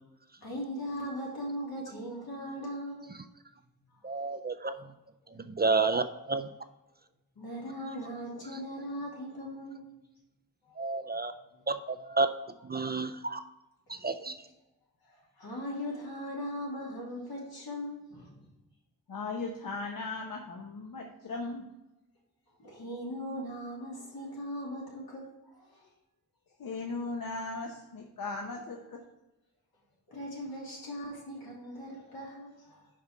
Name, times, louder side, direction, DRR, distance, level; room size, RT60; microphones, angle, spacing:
voice 1, 0.4-3.2 3.9-4.2 5.3-5.4 7.3-9.9 10.6-10.7 11.1-11.2 11.5-11.6 15.0-18.5 22.6-25.9 30.1-32.9, equal, 80° left, -3 dB, 2.8 m, -39 dB
voice 2, 4.0-4.7 5.4-6.5 10.8-11.3 11.7-12.3 12.6-13.4 13.9-14.4, right 3 dB, 30° right, 8 dB, 0.4 m, -30 dB
voice 3, 19.1-21.6 26.6-29.0, left 3 dB, 65° left, 1 dB, 0.9 m, -37 dB
5.4 x 5.1 x 5.9 m, 0.99 s
wide cardioid pair, 95°, 36 cm